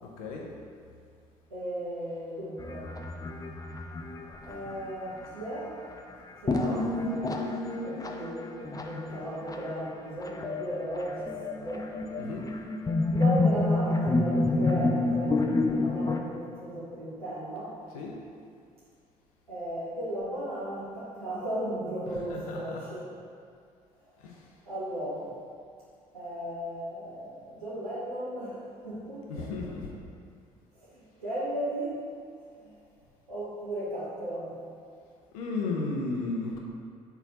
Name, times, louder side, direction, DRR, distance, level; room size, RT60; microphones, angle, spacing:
voice 1, 1.5-2.9 4.4-5.8 6.4-7.5 7.8-11.9 13.1-15.4 15.6-17.7 19.5-23.0 24.7-25.3 26.1-29.5 30.8-32.0 32.6-32.7 33.3-34.6, right 1 dB, 90° right, -11 dB, 1.1 m, -36 dB
sound 1, 2.6-5.4 6.5-16.2, left 2 dB, 20° left, 0.6 m, -29 dB
voice 2, 12.1-12.5 17.9-18.2 22.1-22.9 24.2-24.3 29.3-29.9 35.3-36.6, left 3 dB, 75° left, -1 dB, 0.8 m, -34 dB
4.6 x 4.4 x 5.6 m, 2.3 s
figure-of-eight pair, 50°, 18 cm